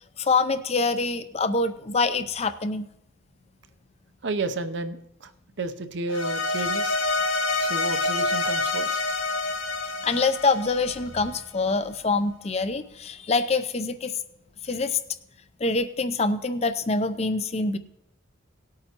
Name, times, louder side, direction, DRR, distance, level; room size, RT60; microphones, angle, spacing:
voice 1, 0.2-2.9 10.0-14.2 14.6-15.0 15.6-17.8, left 3 dB, 30° left, 11 dB, 0.5 m, -25 dB
voice 2, 4.2-5.3 5.6-7.0 7.6-9.0, right 3 dB, 60° right, 9 dB, 0.7 m, -31 dB
sound 1, 6.1-11.4, left 2 dB, 90° left, 1.4 m, -27 dB
18.5 x 8.5 x 2.9 m, 0.83 s
head